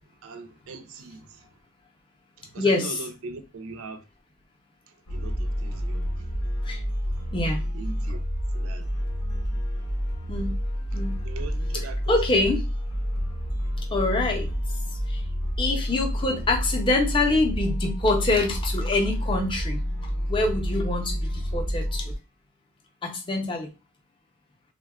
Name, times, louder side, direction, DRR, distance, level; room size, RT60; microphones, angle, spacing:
voice 1, 0.2-1.5 2.4-4.0 5.1-6.2 7.7-8.3 8.5-8.9 11.2-12.2, right 3 dB, 70° right, 0.4 m, -40 dB
voice 2, 2.6-3.0 6.6-6.8 7.3-7.6 10.3-10.5 10.9-11.2 12.1-12.6 13.9-14.5 15.1-15.2 15.6-22.1 23.0-23.7, left 2 dB, 20° left, 0.5 m, -25 dB
sound 1, 5.1-22.1, equal, 85° left, 0.7 m, -29 dB
3.5 x 2.1 x 2.2 m
head